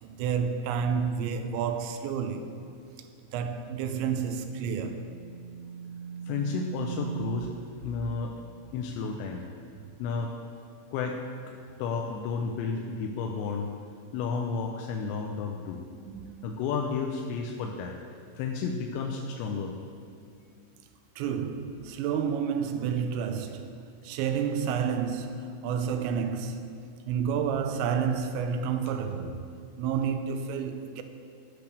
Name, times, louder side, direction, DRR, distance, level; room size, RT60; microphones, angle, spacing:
voice 1, 0.0-2.5 3.3-5.1 16.1-16.4 21.2-23.7 24.0-26.7 27.1-29.4 29.8-31.0, right 7 dB, 80° right, 2.7 m, -30 dB
sound 1, 3.8-7.7, right 7 dB, 65° left, 3.8 m, -39 dB
voice 2, 6.3-7.5 7.8-8.3 8.7-9.4 10.0-10.3 10.9-11.4 11.8-13.7 14.1-15.8 16.4-18.0 18.4-19.7, left 5 dB, 80° left, 2.7 m, -32 dB
15.0 x 5.1 x 6.6 m
omnidirectional pair, 5.5 m